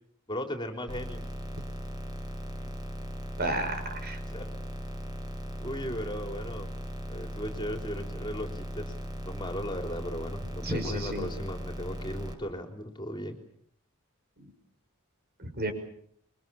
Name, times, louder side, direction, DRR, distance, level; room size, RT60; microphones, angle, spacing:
voice 1, 0.3-1.2 4.3-4.5 5.6-6.7 7.1-8.9 9.2-13.4, equal, 20° left, 4 dB, 3.7 m, -37 dB
sound 1, 0.9-12.3, equal, 20° right, 5.4 m, -38 dB
voice 2, 3.4-4.2 10.6-11.3 14.4-14.5 15.4-15.7, right 1 dB, 45° right, 7 dB, 5.9 m, -32 dB
27.0 x 24.0 x 7.1 m, 0.66 s
head